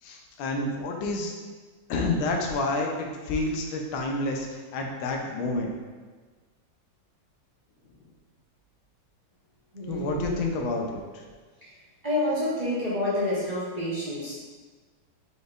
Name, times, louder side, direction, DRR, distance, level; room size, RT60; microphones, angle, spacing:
voice 1, 0.0-1.3 1.9-5.7 9.9-11.2, left 2 dB, 85° left, 1 dB, 1.4 m, -29 dB
voice 2, 9.7-10.3 12.0-14.4, left 1 dB, 35° right, -10 dB, 0.7 m, -28 dB
5.1 x 4.1 x 2.4 m, 1.4 s
omnidirectional pair, 2.1 m